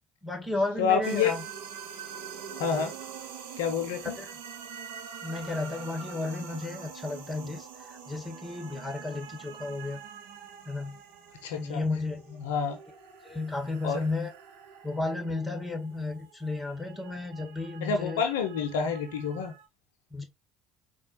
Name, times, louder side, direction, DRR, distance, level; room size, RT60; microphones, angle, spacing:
voice 1, 0.2-1.4 4.2-4.3 5.2-10.0 10.6-11.0 11.6-12.3 13.2-14.3 14.8-18.2 20.1-20.2, left 2 dB, 10° left, 1.4 m, -33 dB
voice 2, 0.8-1.3 2.6-2.9 3.6-4.2 11.4-11.8 12.4-12.8 13.8-14.0 17.8-19.5, left 6 dB, 75° left, 0.4 m, -28 dB
sound 1, 1.0-19.6, right 7 dB, 75° right, 0.5 m, -45 dB
4.1 x 2.2 x 2.8 m
hypercardioid pair, 55°, 0 cm